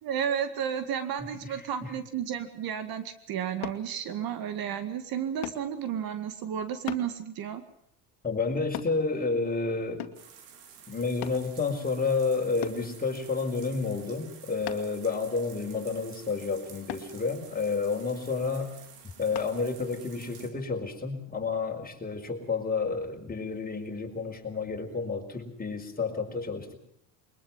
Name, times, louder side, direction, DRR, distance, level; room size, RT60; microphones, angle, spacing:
voice 1, 0.0-7.6, right 8 dB, 55° right, 10 dB, 2.1 m, -32 dB
sound 1, 3.6-3.9 5.4-5.7 6.9-7.1 8.7-9.0 10.0-10.3 11.2-11.4 12.6-12.9 14.7-15.0 16.9-17.1 19.3-19.5 20.1-20.2, left 14 dB, 65° left, 2.2 m, -37 dB
voice 2, 8.2-10.0 10.9-18.7 19.2-26.8, left 4 dB, 20° left, 3 dB, 4.8 m, -30 dB
sound 2, 10.1-20.5, right 7 dB, 75° right, 4.1 m, -51 dB
22.5 x 21.0 x 7.4 m, 0.72 s
supercardioid pair, 90°, 43 cm